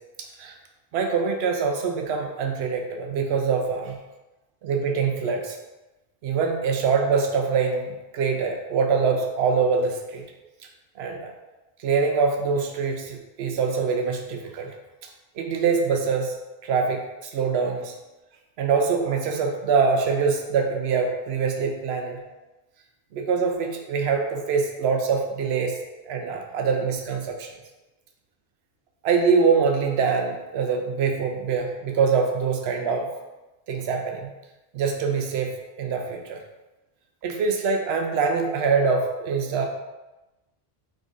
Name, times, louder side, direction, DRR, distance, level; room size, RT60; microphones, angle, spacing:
voice 1, 0.9-4.0 4.6-5.6 6.2-10.2 11.0-11.3 11.8-14.7 15.4-16.4 16.6-17.0 17.3-17.9 18.6-22.2 23.1-25.8 26.1-27.5 29.0-33.1 33.7-34.3 34.7-36.4 37.2-39.7, right 5 dB, 80° right, 3 dB, 0.8 m, -24 dB
3.7 x 3.5 x 2.4 m, 1.0 s
omnidirectional pair, 1.0 m